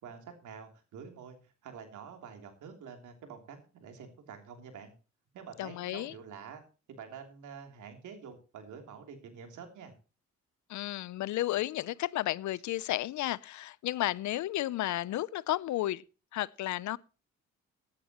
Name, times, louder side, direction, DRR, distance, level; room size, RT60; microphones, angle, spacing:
voice 1, 0.0-4.9 5.3-6.6 6.9-9.9, right 6 dB, 75° right, 3.2 m, -47 dB
voice 2, 5.6-6.1 10.7-16.0 16.3-17.0, left 15 dB, 70° left, 0.6 m, -33 dB
16.0 x 10.5 x 3.0 m
cardioid pair, 90°, 30 cm